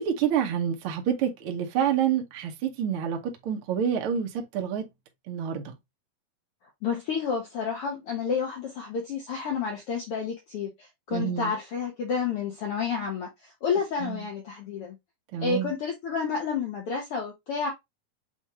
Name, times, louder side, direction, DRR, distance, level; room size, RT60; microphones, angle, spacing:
voice 1, 0.0-4.9 5.3-5.7 11.1-11.5 14.0-14.3 15.3-15.7, right 8 dB, 80° right, 1.2 m, -28 dB
voice 2, 6.8-15.0 15.4-17.7, left 6 dB, 80° left, 1.3 m, -30 dB
7.0 x 2.4 x 2.9 m
omnidirectional pair, 3.8 m